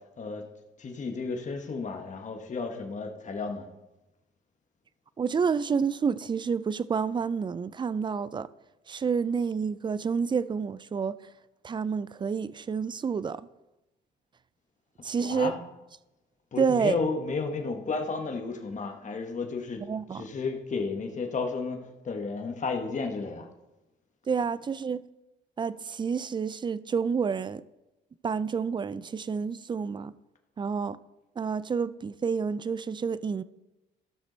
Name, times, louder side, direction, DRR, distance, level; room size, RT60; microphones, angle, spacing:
voice 1, 0.2-0.5 0.8-3.7 15.2-15.6 16.5-23.5, left 4 dB, 40° left, 1.3 m, -33 dB
voice 2, 5.2-8.5 8.9-11.2 11.6-13.4 15.0-15.5 16.6-17.0 19.9-20.2 24.3-25.0 25.6-27.6 28.2-30.1 30.6-31.0 31.4-33.4, right 6 dB, 25° right, 0.4 m, -29 dB
13.5 x 6.0 x 4.0 m
cardioid pair, 90°, 20 cm